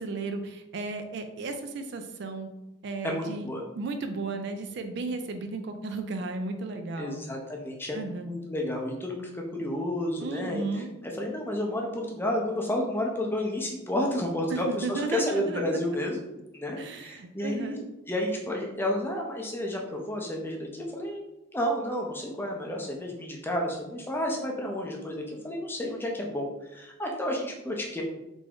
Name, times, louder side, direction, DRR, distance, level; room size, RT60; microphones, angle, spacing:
voice 1, 0.0-2.5 2.8-3.5 3.7-7.2 7.9-8.3 10.2-10.9 14.5-15.6 16.8-17.8, right 3 dB, 60° right, 6 dB, 0.4 m, -34 dB
voice 2, 3.0-3.6 7.0-8.0 8.3-10.6 11.0-16.2 16.5-17.8 18.1-21.2 21.5-28.0, left 1 dB, 10° left, 0 dB, 0.5 m, -31 dB
3.4 x 2.5 x 3.4 m, 0.95 s
head